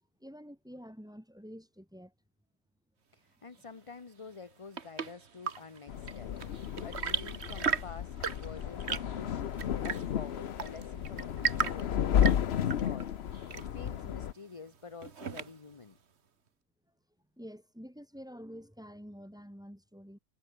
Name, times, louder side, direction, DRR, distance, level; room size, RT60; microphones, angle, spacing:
voice 1, 0.2-2.1 17.4-20.2, equal, 5° right, 3.0 m, -48 dB
voice 2, 3.1-9.4 9.8-16.0, left 5 dB, 25° left, 1.0 m, -49 dB
Chirp tweet / Engine / Tap, 4.3-15.8, right 6 dB, 55° right, 1.6 m, -38 dB
sound 1, 5.9-14.3, left 9 dB, 55° left, 1.0 m, -33 dB
omnidirectional pair, 1.4 m